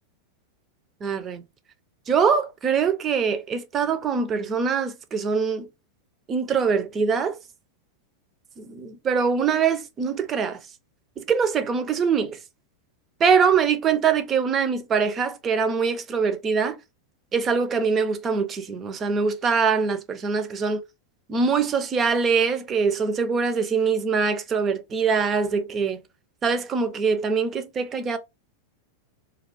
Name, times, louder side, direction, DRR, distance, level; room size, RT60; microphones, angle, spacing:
voice 1, 1.0-1.4 2.1-5.7 6.3-7.4 8.6-10.6 11.2-12.4 13.2-16.8 17.3-20.8 21.3-26.0 26.4-28.2, right 5 dB, 25° right, 0.5 m, -23 dB
2.3 x 2.3 x 3.8 m
figure-of-eight pair, 90°, 0 cm